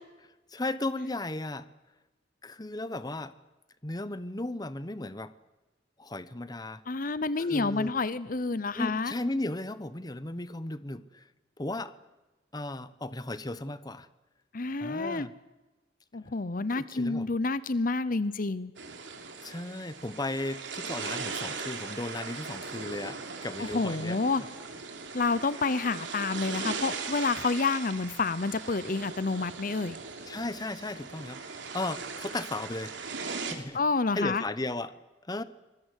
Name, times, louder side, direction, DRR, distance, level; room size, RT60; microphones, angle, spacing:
voice 1, 0.5-1.7 2.4-3.3 3.8-5.3 6.0-6.8 7.4-7.9 8.7-11.2 11.6-11.9 12.5-14.1 14.8-15.3 16.7-17.3 19.4-24.2 25.7-25.8 30.3-32.9 33.4-33.8 34.1-35.0 35.3-35.4, left 2 dB, 20° left, 14 dB, 1.0 m, -35 dB
voice 2, 6.9-9.1 14.5-15.3 16.1-18.7 23.6-24.4 25.1-30.0 33.7-34.4, left 3 dB, 50° left, 16 dB, 0.8 m, -29 dB
sound 1, 18.8-33.5, right 5 dB, 80° right, 3.3 m, -39 dB
26.0 x 20.5 x 8.2 m, 1.1 s
head